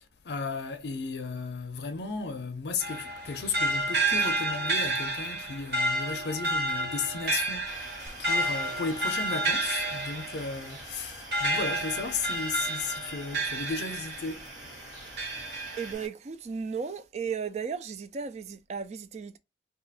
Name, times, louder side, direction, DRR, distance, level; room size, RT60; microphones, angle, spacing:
voice 1, 0.0-14.5, left 4 dB, 65° left, 0.5 m, -35 dB
sound 1, 2.8-14.5 15.0-15.9, right 1 dB, 65° right, 1.1 m, -30 dB
sound 2, 7.7-16.1, right 1 dB, 85° right, 1.4 m, -46 dB
sound 3, 8.1-10.0 13.7-13.8, equal, 15° right, 0.8 m, -46 dB
voice 2, 15.8-19.4, right 6 dB, 35° right, 0.3 m, -35 dB
2.7 x 2.4 x 3.9 m
head